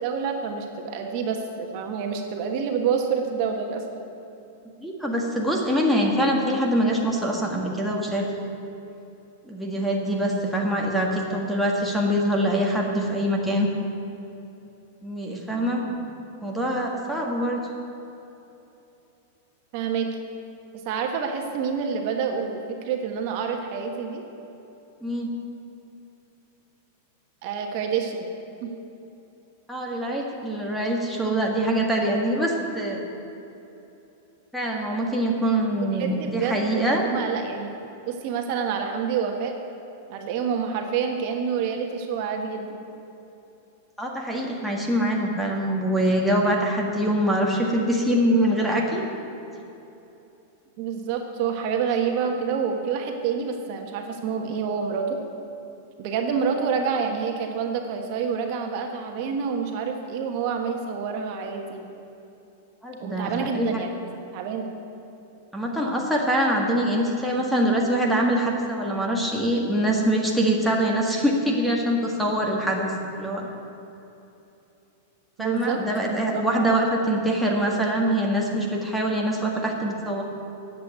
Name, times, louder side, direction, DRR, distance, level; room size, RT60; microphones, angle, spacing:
voice 1, 0.0-3.8 19.7-20.1 20.7-24.2 27.4-28.3 28.6-28.7 35.9-37.7 38.1-39.5 40.1-42.8 50.8-55.2 56.0-61.9 63.0-63.9 64.3-64.7 75.4-75.8 76.1-76.8, right 6 dB, 50° right, 3 dB, 1.3 m, -28 dB
voice 2, 4.8-8.3 9.4-13.7 15.0-16.0 16.4-17.6 25.0-25.3 29.7-33.0 34.5-37.0 44.0-49.0 56.4-56.5 62.8-63.7 65.5-73.5 75.4-80.2, right 1 dB, ahead, -1 dB, 1.6 m, -24 dB
10.0 x 8.0 x 9.1 m, 2.9 s
supercardioid pair, 150°, 0 cm